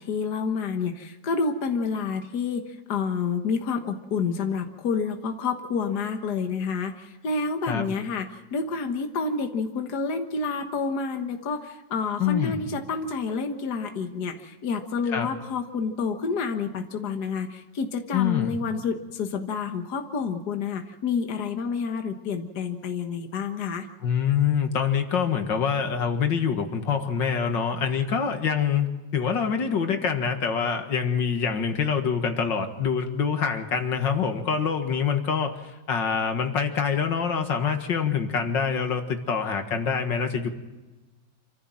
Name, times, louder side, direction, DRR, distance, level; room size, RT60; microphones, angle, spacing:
voice 1, 0.0-23.9, left 5 dB, 60° left, 5 dB, 1.9 m, -29 dB
voice 2, 12.2-12.6 15.1-15.3 18.1-18.6 24.0-28.9 29.1-40.5, left 6 dB, 80° left, 6 dB, 2.4 m, -25 dB
27.5 x 14.5 x 7.6 m, 1.2 s
omnidirectional pair, 2.0 m